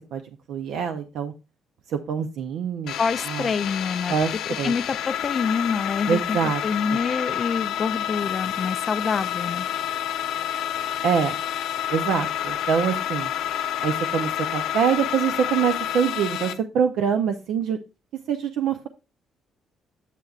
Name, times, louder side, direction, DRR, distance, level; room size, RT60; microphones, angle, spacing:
voice 1, 0.5-1.3 1.9-2.9 3.2-3.5 4.1-4.8 6.1-6.6 6.9-7.0 11.0-11.4 11.9-13.3 13.8-17.8 18.3-18.9, right 7 dB, 70° right, 0.5 m, -24 dB
sound 1, 2.9-16.5, left 10 dB, 80° left, 0.7 m, -29 dB
voice 2, 3.0-4.1 4.6-9.7, left 5 dB, 30° left, 0.3 m, -26 dB
8.2 x 7.7 x 2.4 m
cardioid pair, 170°, 0 cm